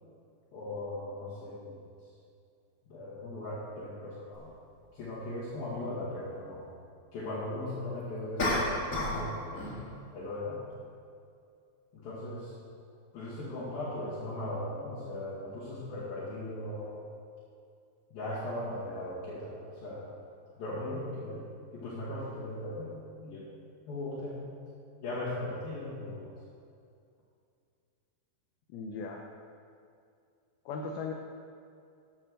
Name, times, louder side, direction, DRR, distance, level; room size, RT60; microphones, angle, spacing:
voice 1, 0.5-1.8 2.9-4.5 4.9-6.7 7.1-9.8 10.1-10.6 11.9-12.6 13.1-17.0 18.1-20.1 20.6-21.4 21.7-23.5 23.9-24.5 25.0-26.3, left 1 dB, 60° left, -9 dB, 3.7 m, -38 dB
sound 1, 4.3-4.4 8.4-9.3 9.5-9.9, left 2 dB, 35° left, 1.2 m, -30 dB
voice 2, 28.7-29.3 30.7-31.1, left 4 dB, 75° left, 3 dB, 2.3 m, -37 dB
12.0 x 8.9 x 6.5 m, 2.4 s
omnidirectional pair, 5.1 m